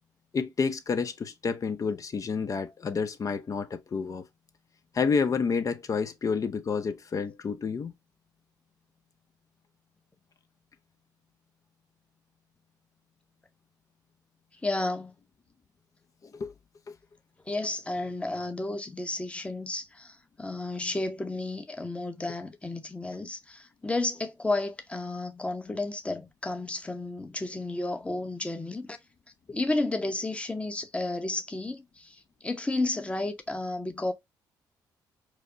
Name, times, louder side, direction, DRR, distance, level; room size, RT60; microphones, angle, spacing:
voice 1, 0.3-4.2 4.9-7.9 16.2-16.5, left 5 dB, 45° left, 0.6 m, -29 dB
voice 2, 14.6-15.1 17.5-29.0 29.5-34.1, left 2 dB, 15° left, 0.8 m, -32 dB
4.8 x 2.0 x 2.6 m
supercardioid pair, 65°, 8 cm